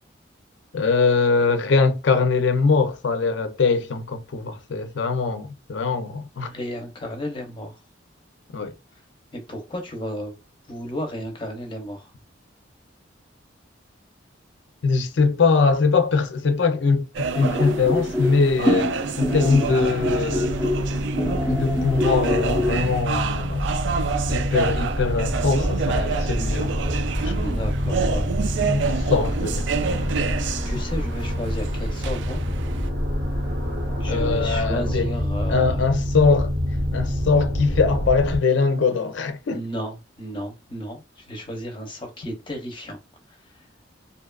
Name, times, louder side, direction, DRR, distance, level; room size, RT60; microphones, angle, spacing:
voice 1, 0.7-6.5 8.5-8.7 14.8-20.6 21.5-23.7 24.3-26.7 27.2-27.4 28.1-28.2 28.7-29.6 34.1-35.1 35.5-36.6 36.9-39.6, left 4 dB, 70° left, 0.5 m, -22 dB
voice 2, 6.4-7.8 9.3-10.4 10.7-12.1 27.3-28.3 30.6-32.4 34.0-35.8 39.5-43.0, equal, 25° left, 0.6 m, -33 dB
sound 1, 17.1-32.9, right 5 dB, 70° right, 0.3 m, -29 dB
sound 2, 17.3-23.0, left 1 dB, 15° right, 0.6 m, -26 dB
sound 3, 19.2-38.4, equal, 50° right, 0.8 m, -26 dB
2.7 x 2.3 x 2.2 m
head